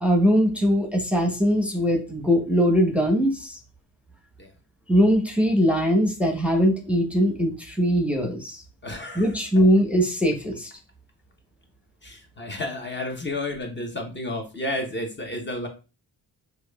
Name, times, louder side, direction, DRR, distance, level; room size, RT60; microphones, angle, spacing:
voice 1, 0.0-3.6 4.9-8.6 9.2-10.7, equal, 5° right, 1 dB, 0.9 m, -21 dB
voice 2, 8.8-9.5 12.0-15.7, left 1 dB, 30° left, 3 dB, 0.9 m, -31 dB
4.6 x 2.5 x 2.3 m, 0.31 s
cardioid pair, 65°, 39 cm